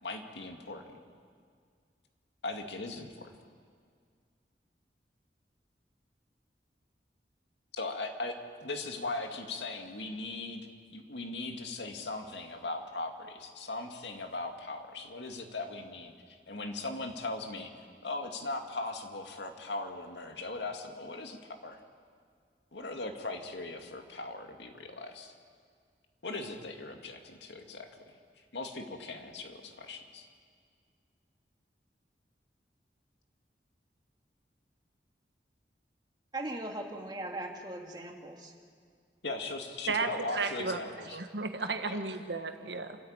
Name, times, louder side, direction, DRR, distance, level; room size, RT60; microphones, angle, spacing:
voice 1, 0.0-1.0 2.4-3.3 7.7-8.3 8.6-21.8 22.7-25.3 26.2-28.2 28.5-30.3 39.2-41.2 41.9-42.0, left 2 dB, 85° left, 4 dB, 2.2 m, -39 dB
voice 2, 36.3-38.5, right 1 dB, 25° right, 1 dB, 2.1 m, -39 dB
voice 3, 39.9-40.8 41.1-43.0, right 3 dB, 80° right, 6 dB, 1.6 m, -33 dB
29.0 x 13.5 x 8.9 m, 2.1 s
head